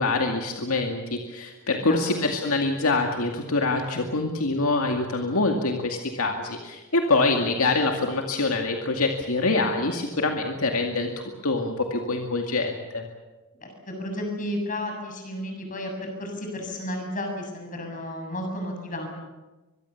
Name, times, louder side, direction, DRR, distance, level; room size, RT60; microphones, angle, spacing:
voice 1, 0.0-13.1, left 3 dB, 75° left, 3 dB, 2.3 m, -25 dB
voice 2, 1.8-2.2 7.3-7.4 13.6-19.1, left 1 dB, 40° left, 3 dB, 7.2 m, -33 dB
24.5 x 22.5 x 7.2 m, 1.2 s
head